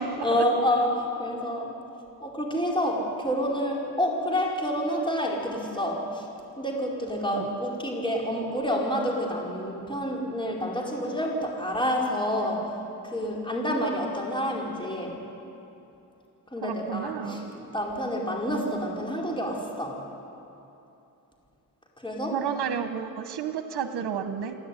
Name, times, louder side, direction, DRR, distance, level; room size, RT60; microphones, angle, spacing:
voice 1, 0.2-1.7 2.2-6.3 6.6-12.8 13.0-15.2 16.5-20.0 22.0-22.4, equal, 10° left, -2 dB, 4.8 m, -28 dB
voice 2, 16.6-17.5 22.3-24.6, right 7 dB, 80° right, 8 dB, 1.2 m, -31 dB
28.0 x 12.0 x 9.9 m, 2.8 s
cardioid pair, 80°, 40 cm